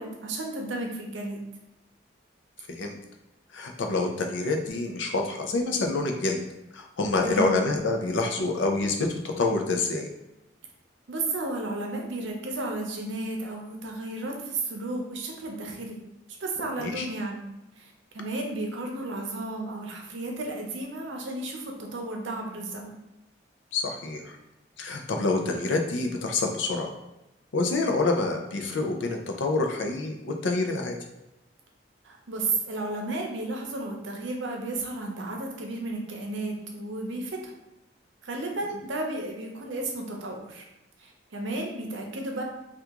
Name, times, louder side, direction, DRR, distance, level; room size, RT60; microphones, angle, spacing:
voice 1, 0.0-1.4 7.2-7.5 11.1-16.0 16.4-17.4 17.8-22.9 32.0-37.5 38.2-40.6 41.0-42.4, right 2 dB, 80° right, 1 dB, 0.6 m, -33 dB
voice 2, 2.6-3.0 3.5-6.4 6.7-10.1 16.8-17.1 23.7-24.4 24.8-26.9 27.5-31.0, left 3 dB, 75° left, 3 dB, 0.5 m, -27 dB
2.9 x 2.4 x 3.5 m, 0.95 s
head